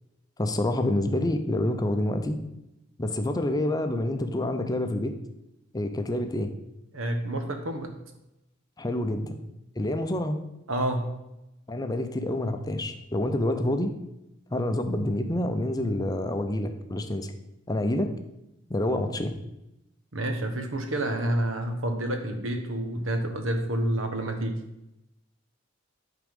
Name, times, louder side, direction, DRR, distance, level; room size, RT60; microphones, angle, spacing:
voice 1, 0.4-2.4 3.0-5.1 5.7-6.5 8.8-9.4 9.8-10.4 11.7-13.9 14.5-17.3 17.7-18.1 18.7-19.4, left 1 dB, 20° left, 7 dB, 0.6 m, -27 dB
voice 2, 6.9-7.9 10.7-11.0 20.1-24.5, right 1 dB, 85° right, 5 dB, 1.2 m, -28 dB
9.3 x 3.8 x 5.2 m, 0.90 s
head